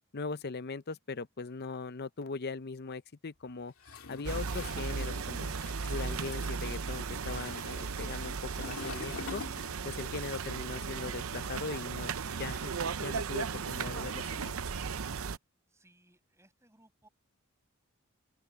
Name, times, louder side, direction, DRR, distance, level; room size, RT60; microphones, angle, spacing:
voice 1, 0.1-3.7 4.1-5.5 5.9-9.4 9.8-12.1 12.4-14.6, left 4 dB, 50° left, 0.7 m, -40 dB
Toilet flush, 3.8-10.2 10.5-12.1, left 4 dB, 90° left, 2.3 m, -47 dB
sound 1, 4.2-15.4, right 5 dB, 80° right, 0.7 m, -36 dB
voice 2, 15.7-17.1, right 1 dB, 15° right, 7.6 m, -64 dB
open air
head